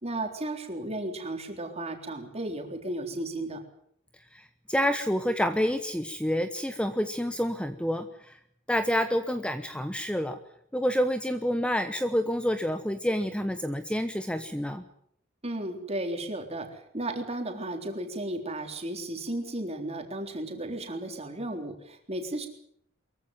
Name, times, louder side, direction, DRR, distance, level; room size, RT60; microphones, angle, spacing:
voice 1, 0.0-3.6 15.4-22.5, right 1 dB, 30° right, 4 dB, 3.8 m, -34 dB
voice 2, 4.3-8.4 8.7-10.4 10.7-14.8, equal, 5° left, 9 dB, 1.0 m, -28 dB
23.5 x 15.0 x 9.3 m, 0.70 s
head